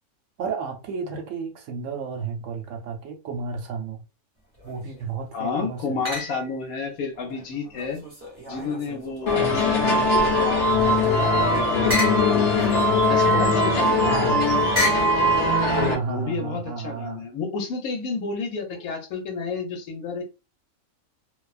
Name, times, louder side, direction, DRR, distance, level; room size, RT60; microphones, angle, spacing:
voice 1, 0.4-4.0 4.6-6.0 9.3-10.1 14.1-14.4 15.7-17.2 18.7-18.9, right 5 dB, 70° right, 0.9 m, -32 dB
sound 1, 4.5-5.1 6.0-6.6 7.1-9.8 10.3-15.2, left 1 dB, 15° right, 1.3 m, -33 dB
voice 2, 5.3-8.0 8.5-10.0 10.4-12.8 13.1-14.3 15.8-20.2, left 4 dB, 80° left, 1.2 m, -31 dB
sound 2, 9.3-15.9, left 1 dB, 60° left, 1.0 m, -20 dB
2.5 x 2.3 x 2.3 m
omnidirectional pair, 1.5 m